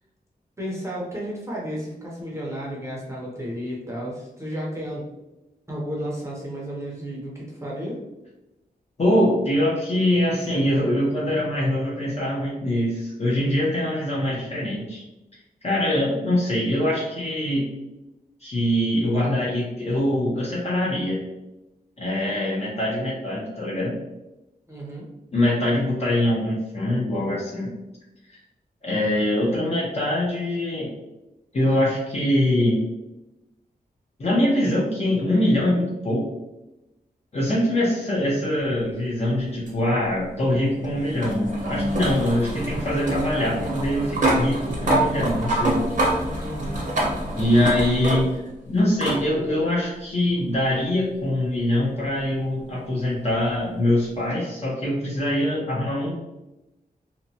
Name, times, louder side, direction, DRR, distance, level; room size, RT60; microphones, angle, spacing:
voice 1, 0.6-5.1 5.7-8.0 24.7-25.1 46.4-46.9, equal, 15° right, -4 dB, 0.6 m, -32 dB
voice 2, 9.0-15.0 15.6-17.7 18.4-21.2 22.0-23.9 25.3-27.7 28.8-30.9 31.5-32.8 34.2-36.2 37.3-46.1 47.4-48.4 48.7-56.1, left 1 dB, 40° left, -5 dB, 0.6 m, -23 dB
sound 1, 39.7-48.5 49.0-49.2 50.5-50.6 53.5-53.6, right 1 dB, 50° right, 0.7 m, -26 dB
2.8 x 2.1 x 2.7 m, 0.97 s
wide cardioid pair, 130°, 16 cm